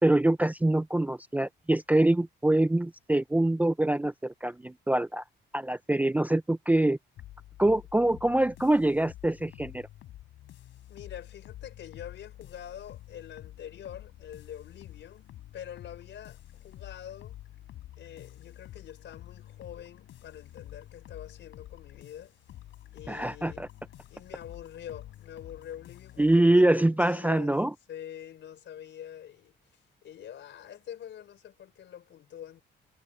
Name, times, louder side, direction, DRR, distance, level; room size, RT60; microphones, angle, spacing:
voice 1, 0.0-5.2 5.5-7.0 7.6-9.9 23.1-23.7 26.2-27.7, right 1 dB, 10° right, 0.5 m, -24 dB
sound 1, 7.2-26.4, left 13 dB, 85° left, 3.7 m, -49 dB
voice 2, 10.9-15.3 15.5-17.4 18.0-22.3 22.9-23.6 24.1-27.5 27.9-29.6 30.0-32.6, left 10 dB, 65° left, 4.2 m, -45 dB
cardioid pair, 90°, 20 cm